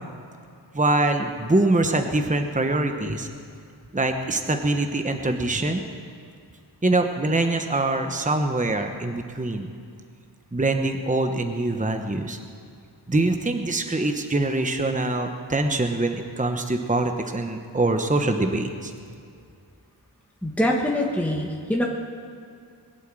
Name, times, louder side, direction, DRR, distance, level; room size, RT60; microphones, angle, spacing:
voice 1, 0.7-3.3 3.9-5.8 6.8-9.7 10.5-12.4 13.1-18.9, right 2 dB, 15° right, 5 dB, 1.0 m, -24 dB
voice 2, 20.4-21.9, left 1 dB, 5° left, -1 dB, 1.4 m, -24 dB
21.5 x 8.2 x 7.6 m, 2.4 s
wide cardioid pair, 50°, 43 cm